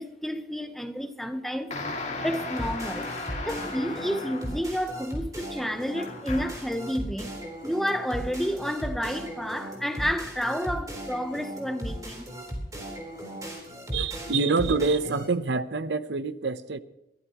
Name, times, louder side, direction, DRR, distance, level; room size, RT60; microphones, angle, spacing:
voice 1, 0.0-7.4 7.6-12.3, equal, ahead, 0.9 m, -31 dB
sound 1, 1.7-4.7 5.9-6.7, left 3 dB, 40° left, 2.1 m, -36 dB
sound 2, 2.3-15.3, equal, 20° right, 4.1 m, -37 dB
voice 2, 13.9-16.8, right 4 dB, 75° right, 0.8 m, -26 dB
23.0 x 15.0 x 3.0 m
head